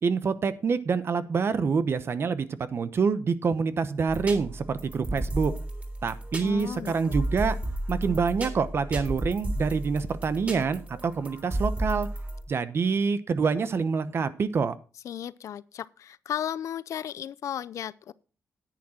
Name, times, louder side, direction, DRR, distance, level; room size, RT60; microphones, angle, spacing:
voice 1, 0.0-5.5 6.0-7.6 7.9-12.1 12.5-14.7, right 5 dB, 50° right, 0.9 m, -26 dB
sound 1, 4.1-12.4, right 1 dB, 25° right, 3.5 m, -33 dB
voice 2, 6.4-7.2 15.0-18.1, left 10 dB, 70° left, 0.5 m, -35 dB
10.0 x 8.9 x 4.3 m
cardioid pair, 105°, 6 cm